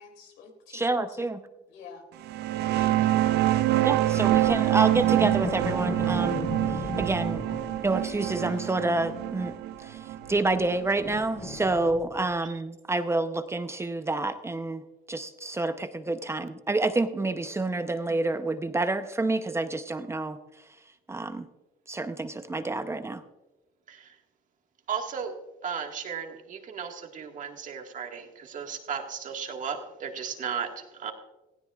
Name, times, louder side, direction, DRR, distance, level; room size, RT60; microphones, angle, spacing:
voice 1, 0.0-1.2 1.7-2.0 2.6-3.2, left 5 dB, 85° left, 4 dB, 2.8 m, -49 dB
voice 2, 0.7-1.4 3.8-7.4 7.8-9.5 9.8-10.0 10.3-14.8 15.1-20.4 21.1-21.5 21.9-23.2, right 2 dB, 15° right, 9 dB, 0.7 m, -28 dB
sound 1, 2.2-11.5, right 14 dB, 80° right, 0.6 m, -26 dB
sound 2, 4.2-9.8 10.1-12.4, left 3 dB, 35° left, 3.7 m, -37 dB
voice 3, 24.9-25.3 25.6-31.1, right 7 dB, 50° right, 4 dB, 1.7 m, -35 dB
17.5 x 16.0 x 2.4 m, 1.0 s
cardioid pair, 110°, 17 cm